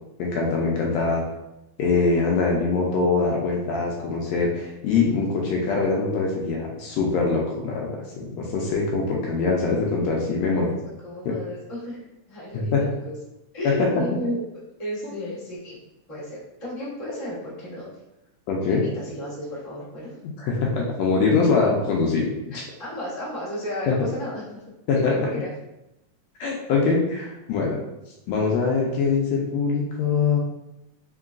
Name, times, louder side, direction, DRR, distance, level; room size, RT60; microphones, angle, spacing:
voice 1, 0.2-1.2 1.8-10.7 11.2-11.3 12.7-12.8 13.6-13.9 18.5-18.8 20.4-22.6 23.9-24.0 24.9-25.3 26.4-27.8 28.3-30.4, left 4 dB, 75° left, -1 dB, 1.7 m, -23 dB
voice 2, 11.0-12.0 12.3-13.1 13.5-14.4 14.8-15.8 16.1-18.0 18.7-20.1 22.8-24.6 24.9-25.5, left 1 dB, 45° left, -10 dB, 0.4 m, -33 dB
3.8 x 3.7 x 2.4 m, 0.91 s
omnidirectional pair, 3.4 m